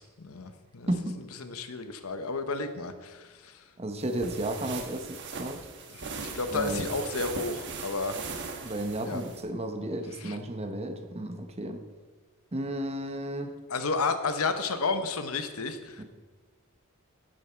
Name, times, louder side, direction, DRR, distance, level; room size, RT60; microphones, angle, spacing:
voice 1, 0.0-0.9 1.4-3.6 5.9-8.2 9.1-9.2 10.2-10.4 13.7-16.0, left 3 dB, 75° left, 9 dB, 0.9 m, -32 dB
voice 2, 0.9-1.2 3.8-5.7 6.5-6.9 8.6-11.8 12.5-13.5 16.0-16.1, right 1 dB, 30° right, 7 dB, 0.9 m, -33 dB
sound 1, 4.0-9.4, right 4 dB, 55° right, 1.1 m, -39 dB
10.0 x 9.3 x 4.5 m, 1.4 s
head